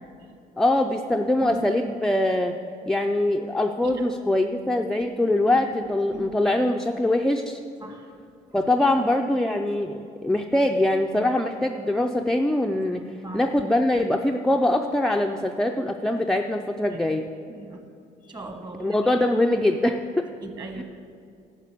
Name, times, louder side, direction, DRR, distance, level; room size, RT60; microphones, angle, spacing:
voice 1, 0.6-2.6 2.9-7.6 8.5-13.1 13.3-17.3 18.8-20.3 20.7-20.8, left 1 dB, 5° left, 2 dB, 0.4 m, -23 dB
voice 2, 5.3-5.6 6.1-6.3 7.8-8.1 13.2-13.4 16.9-17.0 17.5-17.8 18.3-19.0 20.4-20.8, right 2 dB, 25° right, 5 dB, 1.5 m, -37 dB
11.5 x 6.0 x 8.3 m, 2.5 s
cardioid pair, 110°, 17 cm